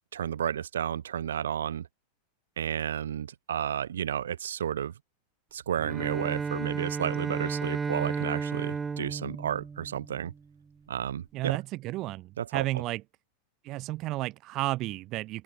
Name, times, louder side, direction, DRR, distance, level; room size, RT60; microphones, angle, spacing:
voice 1, 0.1-1.9 2.6-4.9 5.5-10.3 10.9-11.6 12.4-12.7, right 9 dB, 65° right, 1.8 m, -32 dB
Bowed string instrument, 5.8-10.4, right 5 dB, 15° right, 1.1 m, -33 dB
voice 2, 11.3-13.0 13.6-15.4, right 18 dB, 40° right, 0.8 m, -32 dB
open air
figure-of-eight pair, 90°, 0 cm